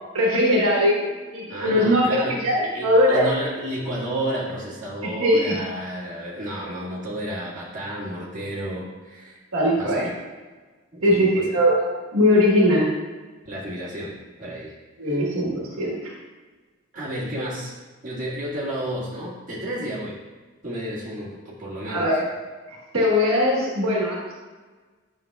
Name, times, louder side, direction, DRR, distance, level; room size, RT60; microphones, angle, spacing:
voice 1, 0.1-2.0 2.4-3.3 5.0-5.6 9.5-10.0 11.0-12.9 15.0-15.9 21.9-22.2 22.9-24.3, equal, 75° right, -4 dB, 1.4 m, -20 dB
voice 2, 1.5-9.4 9.8-10.1 10.9-11.7 13.4-14.7 15.0-15.2 16.9-17.8 18.0-20.2 20.6-22.2, right 1 dB, 35° right, -7 dB, 1.9 m, -32 dB
9.4 x 6.1 x 2.4 m, 1.3 s
head